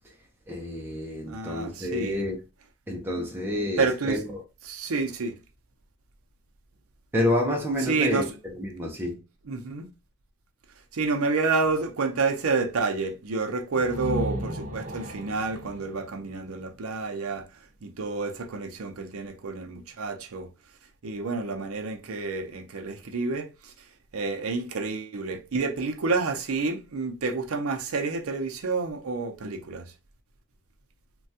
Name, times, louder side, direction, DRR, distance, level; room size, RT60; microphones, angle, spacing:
voice 1, 0.5-2.4 2.9-4.4 7.1-9.2, left 1 dB, 10° right, 0.5 m, -29 dB
voice 2, 1.3-2.2 3.8-4.2 4.7-5.3 7.9-8.3 9.5-9.8 10.9-17.5 17.8-20.5 21.0-23.5 24.1-29.9, right 4 dB, 90° right, 0.6 m, -29 dB
sound 1, 13.7-17.4, left 1 dB, 40° right, 0.7 m, -35 dB
3.3 x 2.3 x 2.7 m
head